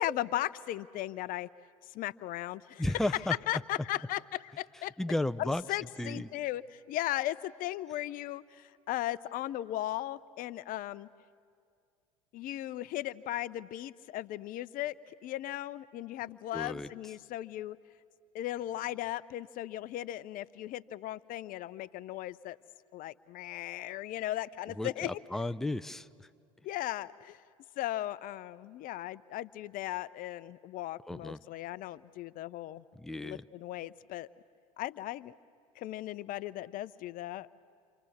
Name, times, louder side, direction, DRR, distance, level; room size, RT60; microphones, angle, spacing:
voice 1, 0.0-1.5 1.9-2.8 3.5-4.9 5.4-11.1 12.3-17.8 18.3-22.6 22.9-25.2 26.6-27.4 27.8-32.8 33.2-34.3 34.8-35.3 35.8-37.5, left 14 dB, 50° left, 17 dB, 0.7 m, -37 dB
voice 2, 2.8-3.4 5.0-5.6 6.0-6.3 16.5-16.9 24.8-26.3 31.1-31.4 32.9-33.4, left 1 dB, ahead, 12 dB, 0.7 m, -33 dB
29.5 x 26.5 x 7.2 m, 2.2 s
hypercardioid pair, 75°, 19 cm